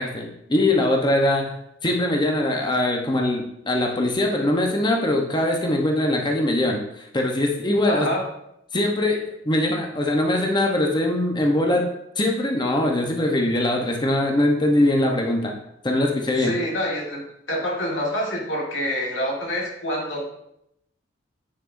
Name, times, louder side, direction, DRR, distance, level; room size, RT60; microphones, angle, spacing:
voice 1, 0.0-1.5 1.8-8.1 8.7-11.9 12.2-15.5 15.8-16.5, left 1 dB, 25° left, 1 dB, 0.9 m, -22 dB
voice 2, 7.9-8.3 16.4-20.3, equal, 80° left, -2 dB, 1.9 m, -27 dB
9.7 x 6.0 x 2.6 m, 0.77 s
head